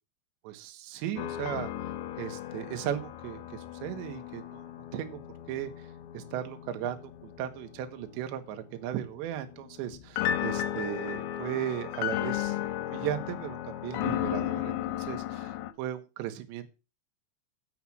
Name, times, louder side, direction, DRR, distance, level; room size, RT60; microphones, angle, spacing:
voice 1, 0.4-4.7 4.9-5.2 5.5-5.7 6.1-7.0 7.2-15.5 15.8-16.7, right 11 dB, 70° right, 7 dB, 3.4 m, -36 dB
sound 1, 1.2-15.7, left 12 dB, 75° left, 2.9 m, -35 dB
7.9 x 7.1 x 7.7 m, 0.29 s
omnidirectional pair, 5.5 m